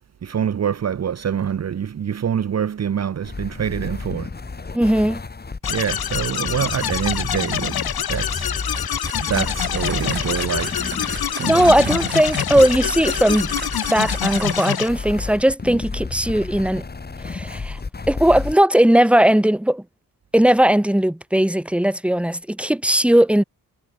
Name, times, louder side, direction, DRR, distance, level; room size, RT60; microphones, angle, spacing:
voice 1, 0.2-4.3 5.7-7.8 8.1-8.8 9.2-10.9 11.3-11.7, right 8 dB, 45° right, 1.0 m, -25 dB
sound 1, 3.2-18.6, left 4 dB, 25° left, 6.6 m, -31 dB
voice 2, 4.7-5.2 11.4-13.5 13.9-16.9 17.2-17.8 18.1-19.8 20.3-23.4, right 1 dB, 5° right, 2.7 m, -18 dB
sound 2, 5.6-14.9, left 9 dB, 90° left, 3.2 m, -26 dB
sound 3, 8.7-15.0, right 5 dB, 30° right, 2.4 m, -37 dB
wide cardioid pair, 170°, 36 cm